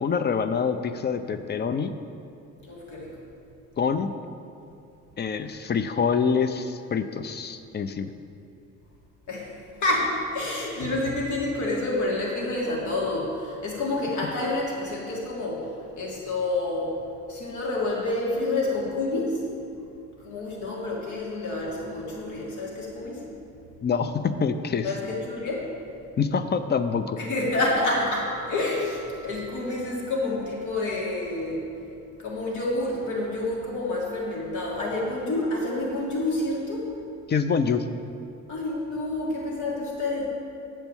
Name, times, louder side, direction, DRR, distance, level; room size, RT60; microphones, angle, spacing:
voice 1, 0.0-2.0 3.8-4.1 5.2-8.1 23.8-24.9 26.2-27.2 37.3-37.9, left 6 dB, 35° left, 10 dB, 0.5 m, -26 dB
voice 2, 2.6-3.2 9.3-17.0 17.3-19.4 20.2-23.3 24.8-25.7 27.2-31.7 32.2-36.9 38.5-40.3, left 2 dB, 75° left, -4 dB, 2.0 m, -28 dB
sound 1, 27.9-31.0, right 2 dB, 55° left, 2.1 m, -45 dB
8.0 x 4.5 x 7.1 m, 2.7 s
cardioid pair, 90°, 30 cm